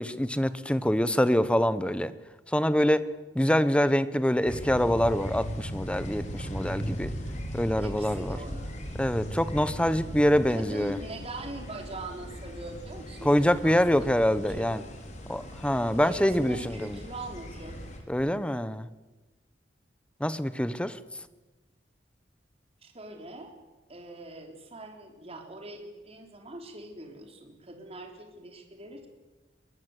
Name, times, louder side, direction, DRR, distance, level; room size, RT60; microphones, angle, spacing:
voice 1, 0.0-2.1 2.5-3.0 3.3-7.1 7.5-8.4 9.0-11.0 13.2-14.8 15.3-17.0 18.1-18.9 20.2-20.9, equal, 5° left, 14 dB, 1.0 m, -25 dB
sound 1, 4.5-18.0, equal, 40° left, 4.3 m, -38 dB
voice 2, 7.7-8.7 10.5-14.7 16.0-17.8 22.8-23.5 23.9-29.1, right 2 dB, 35° right, 4 dB, 3.9 m, -42 dB
22.5 x 21.5 x 8.2 m, 1.2 s
head